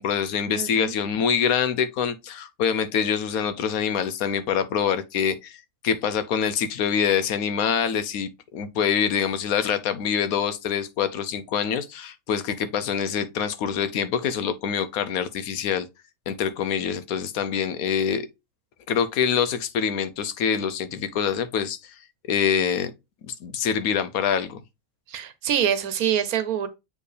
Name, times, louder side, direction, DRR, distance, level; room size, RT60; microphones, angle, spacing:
voice 1, 0.0-5.6 5.8-15.9 16.3-18.3 18.9-21.9 22.3-22.9 23.2-24.6, left 7 dB, 75° left, 1.2 m, -25 dB
voice 2, 0.5-0.9 25.1-26.7, right 9 dB, 80° right, 1.3 m, -25 dB
7.4 x 4.5 x 3.3 m
omnidirectional pair, 1.5 m